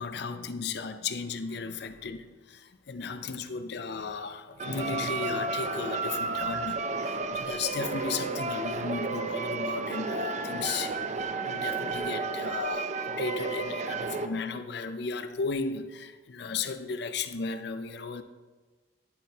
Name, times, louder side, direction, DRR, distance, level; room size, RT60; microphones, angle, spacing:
voice 1, 0.0-10.9 11.5-18.2, left 4 dB, 65° left, 0.5 m, -35 dB
sound 1, 4.6-14.3, right 3 dB, 40° right, 0.5 m, -32 dB
12.0 x 4.5 x 4.0 m
head